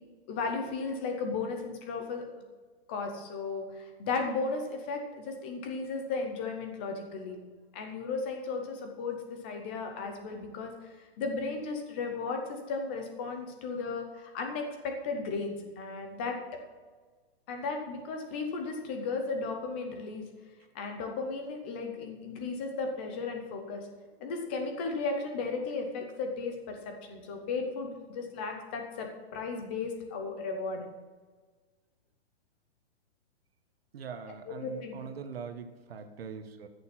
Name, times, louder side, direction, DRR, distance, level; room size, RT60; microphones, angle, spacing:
voice 1, 0.3-2.3 2.9-7.4 7.7-10.7 11.2-16.6 17.5-20.2 20.7-23.9 24.2-30.8 34.5-35.0, left 4 dB, 10° left, 4 dB, 0.5 m, -35 dB
voice 2, 33.9-36.7, right 6 dB, 65° right, 8 dB, 1.4 m, -42 dB
13.5 x 6.8 x 5.9 m, 1.4 s
hypercardioid pair, 180°, 32 cm